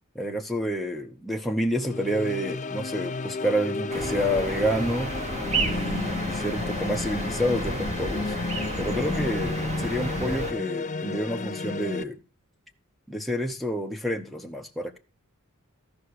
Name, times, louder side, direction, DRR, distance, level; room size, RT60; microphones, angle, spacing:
voice 1, 0.1-5.2 5.5-8.3 8.8-12.2 13.1-15.0, equal, ahead, 0.9 m, -29 dB
sound 1, 1.8-12.0, left 3 dB, 35° left, 0.6 m, -32 dB
sound 2, 3.9-10.5, right 2 dB, 30° right, 1.6 m, -31 dB
13.5 x 5.8 x 4.9 m
head